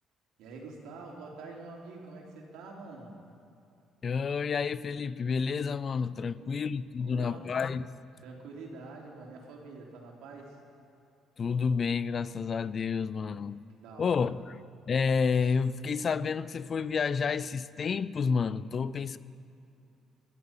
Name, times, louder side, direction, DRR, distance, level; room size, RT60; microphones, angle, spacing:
voice 1, 0.4-3.1 6.2-6.6 7.0-7.5 8.2-10.6 13.2-13.5 13.8-14.3, right 3 dB, 90° right, 3.1 m, -46 dB
voice 2, 4.0-7.9 11.4-13.6 14.0-14.6 14.9-19.2, left 5 dB, 40° left, 0.5 m, -30 dB
20.0 x 12.5 x 5.8 m
cardioid pair, 115°, 0 cm